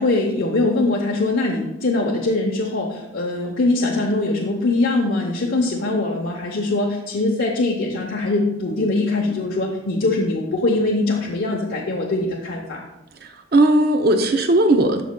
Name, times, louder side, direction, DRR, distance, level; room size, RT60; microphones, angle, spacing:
voice 1, 0.0-12.8, left 2 dB, 70° left, -1 dB, 0.8 m, -22 dB
voice 2, 13.2-15.0, right 1 dB, 50° right, 5 dB, 0.5 m, -17 dB
12.5 x 5.1 x 2.2 m, 0.95 s
head